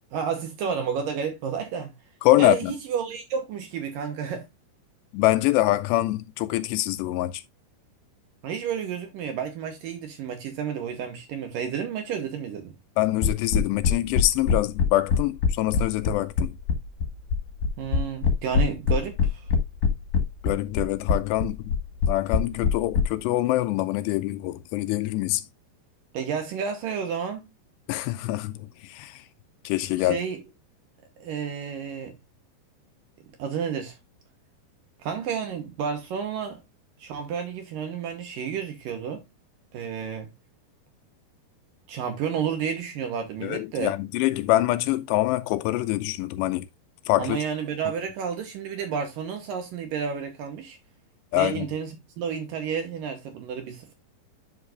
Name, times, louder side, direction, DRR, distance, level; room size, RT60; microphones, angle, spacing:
voice 1, 0.1-1.9 2.4-4.5 8.4-12.7 17.8-19.5 26.1-27.4 30.0-30.4 31.2-32.2 33.4-34.0 35.0-36.6 37.0-39.2 39.7-40.3 41.9-43.9 47.2-50.8 51.3-53.9, right 7 dB, 65° right, 2.4 m, -31 dB
voice 2, 2.2-2.7 5.1-7.4 13.0-16.5 20.4-21.7 22.1-25.5 27.9-29.2 29.6-30.2 43.4-46.7 47.1-47.4 51.3-51.7, left 16 dB, 80° left, 2.6 m, -25 dB
sound 1, 13.2-23.0, left 6 dB, 60° left, 2.6 m, -22 dB
11.0 x 5.6 x 2.4 m
omnidirectional pair, 5.1 m